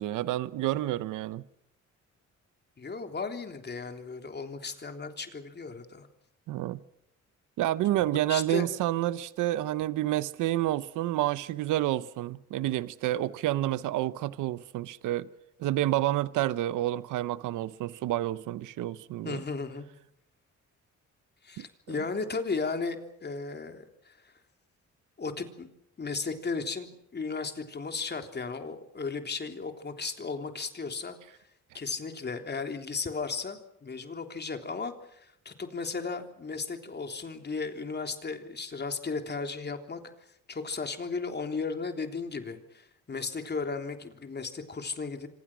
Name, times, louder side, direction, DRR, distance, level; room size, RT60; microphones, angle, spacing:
voice 1, 0.0-1.4 6.5-6.8 7.6-15.3 15.6-19.4 21.6-22.0, right 14 dB, 90° right, 0.9 m, -29 dB
voice 2, 2.8-6.1 8.3-8.7 19.2-19.9 21.4-24.3 25.2-25.7 26.0-31.2 31.7-40.0 40.5-45.3, left 4 dB, 35° left, 3.5 m, -35 dB
26.5 x 26.0 x 6.2 m
cardioid pair, 90°, 30 cm